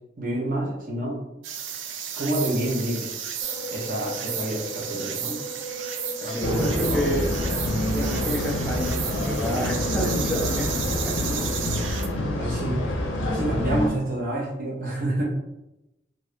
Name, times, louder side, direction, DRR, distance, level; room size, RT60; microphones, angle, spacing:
voice 1, 0.2-1.2 2.2-3.2 3.7-5.4 6.2-7.0 11.3-11.4 11.7-11.8 12.4-12.8 13.2-15.2, right 1 dB, 45° right, -4 dB, 0.8 m, -28 dB
sound 1, 1.4-12.1, right 8 dB, 75° right, 0.4 m, -33 dB
sound 2, 3.4-9.6, right 1 dB, 20° left, 0.8 m, -39 dB
voice 2, 6.2-7.3 7.9-11.2, equal, ahead, -6 dB, 0.5 m, -29 dB
sound 3, 6.4-13.9, left 1 dB, 85° left, 0.6 m, -27 dB
2.8 x 2.6 x 3.3 m, 0.92 s
head